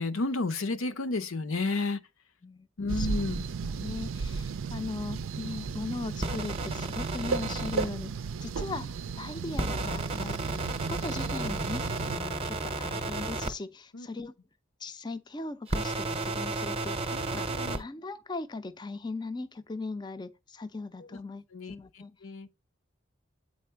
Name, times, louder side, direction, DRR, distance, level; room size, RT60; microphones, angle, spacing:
voice 1, 0.0-2.0 2.8-3.5 13.9-14.1 17.1-17.8 21.1-21.2 21.5-22.5, left 3 dB, 85° left, 0.8 m, -32 dB
sound 1, 2.9-12.2, right 5 dB, 80° right, 0.4 m, -35 dB
voice 2, 3.6-8.1 8.4-14.3 14.8-17.5 17.7-21.4 21.7-22.2, left 3 dB, 20° left, 0.4 m, -39 dB
sound 2, 6.2-7.9 9.6-13.5 15.7-17.8, right 2 dB, 30° right, 0.7 m, -33 dB
8.5 x 4.2 x 4.5 m
head